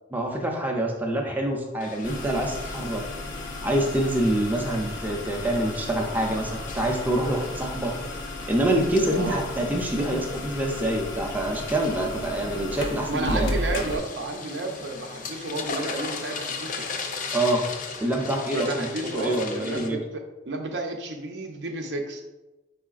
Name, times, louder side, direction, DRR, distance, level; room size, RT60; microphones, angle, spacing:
voice 1, 0.1-3.1 3.6-7.9 8.5-13.5 17.3-17.6 18.0-20.0, right 1 dB, 10° right, 0 dB, 0.5 m, -26 dB
sound 1, 1.8-19.9, left 4 dB, 45° left, 0.5 m, -39 dB
sound 2, 2.0-14.0, left 2 dB, 90° left, 0.8 m, -34 dB
voice 2, 9.1-9.4 13.1-16.9 18.5-22.2, right 2 dB, 75° right, 3 dB, 0.6 m, -32 dB
4.9 x 4.5 x 2.4 m, 1.1 s
head